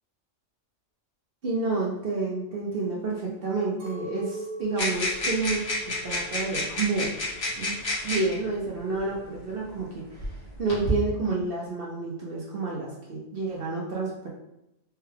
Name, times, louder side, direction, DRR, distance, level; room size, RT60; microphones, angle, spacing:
voice 1, 1.4-5.6 6.0-7.1 7.6-7.8 8.0-14.3, right 3 dB, 55° right, -3 dB, 0.8 m, -29 dB
Chink clink, 3.8-8.2 8.4-9.2, right 1 dB, 90° right, 1.2 m, -41 dB
sound 1, 4.8-8.3 9.3-9.4 10.2-10.9, left 1 dB, 60° left, 1.7 m, -30 dB
4.5 x 2.3 x 3.3 m, 0.88 s
omnidirectional pair, 1.4 m